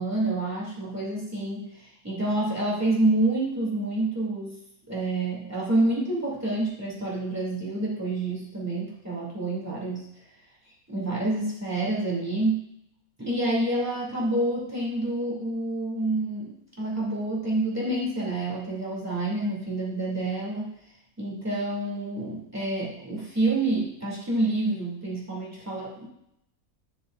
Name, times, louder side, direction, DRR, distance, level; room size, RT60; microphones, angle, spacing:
voice 1, 0.0-4.5 4.9-10.1 10.9-12.7 13.2-20.7 21.2-26.0, right 2 dB, 10° right, -6 dB, 2.8 m, -28 dB
11.5 x 6.7 x 2.6 m, 0.77 s
omnidirectional pair, 1.6 m